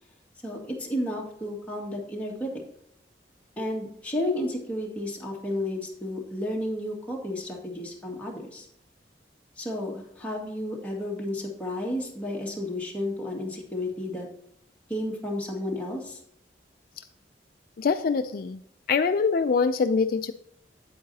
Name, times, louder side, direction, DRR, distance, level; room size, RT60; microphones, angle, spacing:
voice 1, 0.4-2.5 3.6-8.7 9.6-14.3 14.9-16.2, left 1 dB, 10° left, -3 dB, 1.9 m, -32 dB
voice 2, 17.8-18.6 18.9-20.3, left 5 dB, 55° left, 9 dB, 0.4 m, -24 dB
8.7 x 8.6 x 2.8 m, 0.70 s
head